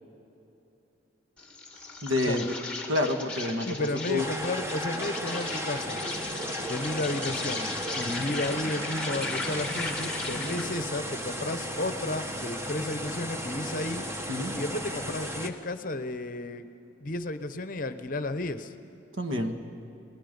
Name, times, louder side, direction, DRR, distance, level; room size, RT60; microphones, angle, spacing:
Insect, 1.4-10.7, left 3 dB, 5° left, 2.1 m, -37 dB
voice 1, 2.0-2.5 2.9-4.3 14.3-14.6 19.2-19.6, left 2 dB, 80° right, 5 dB, 1.8 m, -28 dB
voice 2, 3.6-6.0 6.6-14.0 14.5-16.7 17.0-18.7, left 2 dB, 45° left, 10 dB, 0.9 m, -33 dB
sound 1, 4.2-15.5, equal, 15° right, 1.0 m, -35 dB
29.0 x 19.5 x 5.3 m, 2.8 s
head